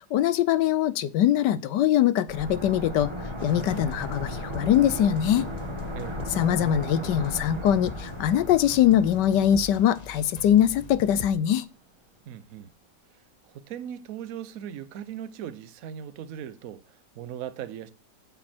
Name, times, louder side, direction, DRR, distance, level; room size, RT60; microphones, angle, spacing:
voice 1, 0.1-3.1 3.4-5.5 6.4-11.6, left 10 dB, 75° left, 1.2 m, -22 dB
sound 1, 2.3-11.0 11.3-11.4, equal, 15° right, 1.5 m, -36 dB
sound 2, 3.4-11.3, left 4 dB, 55° left, 0.4 m, -42 dB
voice 2, 12.3-12.7 13.5-17.9, right 9 dB, 60° right, 1.0 m, -39 dB
11.5 x 5.4 x 4.4 m
omnidirectional pair, 1.9 m